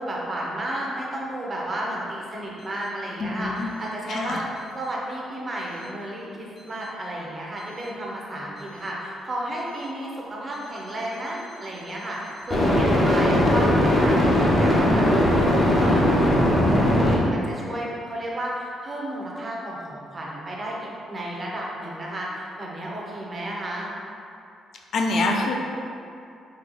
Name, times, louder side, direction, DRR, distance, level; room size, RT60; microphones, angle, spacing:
voice 1, 0.0-15.1 15.4-23.9, right 1 dB, 30° right, -4 dB, 0.7 m, -32 dB
voice 2, 3.4-3.7 4.1-4.4 24.9-25.5, left 2 dB, 60° left, 1 dB, 0.4 m, -24 dB
sound 1, 7.6-7.8 12.5-17.1, left 1 dB, 35° left, 0.7 m, -19 dB
3.7 x 2.3 x 3.1 m, 2.5 s
cardioid pair, 90°, 0 cm